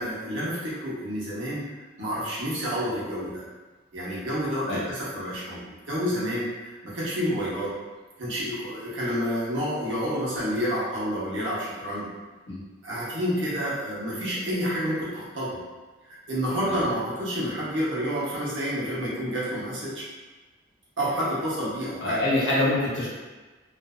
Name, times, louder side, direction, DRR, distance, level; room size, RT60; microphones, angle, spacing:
voice 1, 0.0-1.6 2.0-3.4 3.9-7.7 8.2-12.1 12.8-15.6 16.3-20.1 21.0-22.2, equal, 75° right, -8 dB, 0.9 m, -29 dB
voice 2, 22.0-23.1, left 1 dB, 65° left, -7 dB, 0.9 m, -24 dB
2.5 x 2.4 x 2.2 m, 1.2 s
head